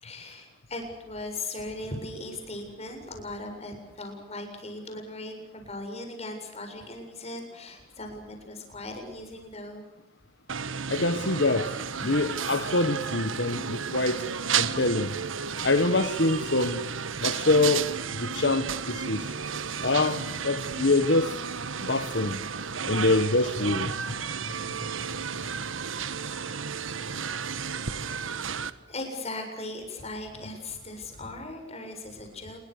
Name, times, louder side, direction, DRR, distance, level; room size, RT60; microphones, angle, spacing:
voice 1, 0.0-9.9 28.9-32.6, left 2 dB, 35° left, 4 dB, 7.6 m, -38 dB
sound 1, 10.5-28.7, right 6 dB, 85° right, 1.4 m, -32 dB
voice 2, 10.9-11.7 12.0-14.2 14.6-15.1 15.6-16.8 17.2-17.9 18.2-19.3 19.8-21.4 21.8-22.4 22.9-23.9, left 2 dB, 60° left, 9 dB, 1.5 m, -25 dB
28.5 x 23.0 x 6.7 m, 0.92 s
head